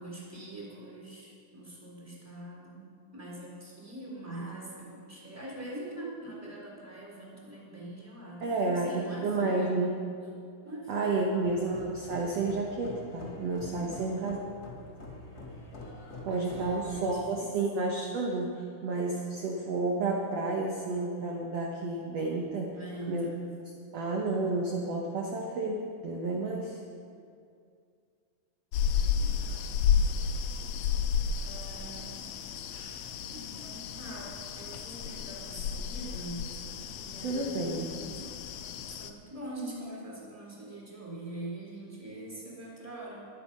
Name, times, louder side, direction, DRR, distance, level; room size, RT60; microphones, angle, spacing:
voice 1, 0.0-10.0 10.6-11.4 13.7-14.2 16.3-17.6 22.7-23.5 29.1-30.0 31.4-32.3 33.3-36.5 36.9-38.3 38.9-43.3, right 1 dB, 5° right, -4 dB, 3.2 m, -43 dB
voice 2, 8.4-9.9 10.9-14.4 16.3-22.7 23.1-23.3 23.9-26.8 32.7-32.9 37.2-38.0, right 3 dB, 60° right, -1 dB, 2.0 m, -31 dB
sound 1, 11.4-17.1, left 2 dB, 30° left, 2.1 m, -45 dB
sound 2, 28.7-39.1, left 7 dB, 75° left, 1.6 m, -32 dB
23.5 x 8.7 x 5.4 m, 2.4 s
omnidirectional pair, 4.0 m